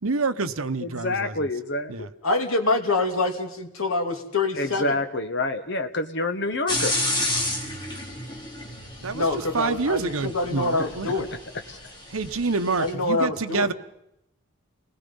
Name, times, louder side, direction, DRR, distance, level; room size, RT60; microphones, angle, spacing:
voice 1, 0.0-1.5 1.9-2.1 9.0-11.2 12.1-13.7, right 3 dB, 80° right, 10 dB, 1.1 m, -27 dB
voice 2, 0.8-2.1 4.6-6.9 10.8-10.9 11.7-11.8, left 2 dB, 50° left, 7 dB, 1.5 m, -27 dB
voice 3, 2.2-4.9 9.1-11.3 12.8-13.7, left 2 dB, 75° left, 3 dB, 2.8 m, -25 dB
sound 1, 6.7-12.9, left 1 dB, 20° left, 3.5 m, -31 dB
29.5 x 20.5 x 5.6 m, 0.80 s
head